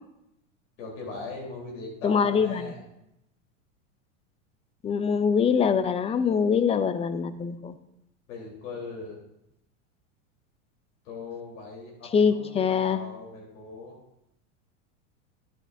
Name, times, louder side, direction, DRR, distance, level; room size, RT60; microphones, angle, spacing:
voice 1, 0.8-2.8 8.3-9.2 11.0-14.0, left 3 dB, 75° left, -1 dB, 3.8 m, -40 dB
voice 2, 2.0-2.7 4.8-7.8 12.1-13.0, left 6 dB, 15° left, 13 dB, 0.4 m, -24 dB
11.0 x 10.5 x 2.7 m, 0.83 s
hypercardioid pair, 110°, 39 cm